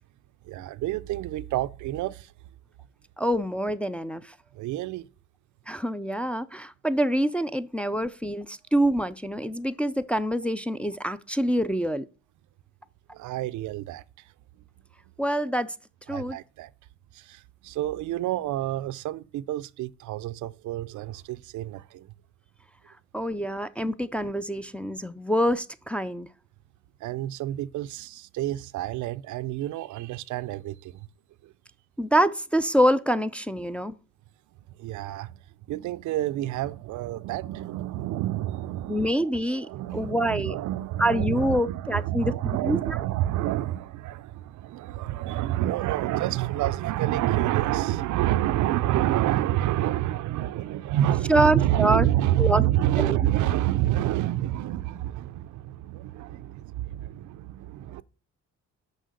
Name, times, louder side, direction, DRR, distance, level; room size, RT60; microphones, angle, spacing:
voice 1, 0.4-2.3 4.5-5.1 13.1-14.3 16.1-16.7 17.1-22.1 27.0-31.1 31.4-31.5 34.7-35.4 35.7-58.0, right 14 dB, 75° right, 0.5 m, -28 dB
voice 2, 3.2-4.3 5.7-12.1 15.2-15.7 16.1-16.4 23.1-26.3 32.0-34.0 38.9-40.6 41.0-42.3 42.6-43.0 51.3-52.1 52.4-52.6 53.0-53.2, right 1 dB, 5° left, 0.4 m, -25 dB
6.4 x 4.9 x 6.5 m
cardioid pair, 90°, 30 cm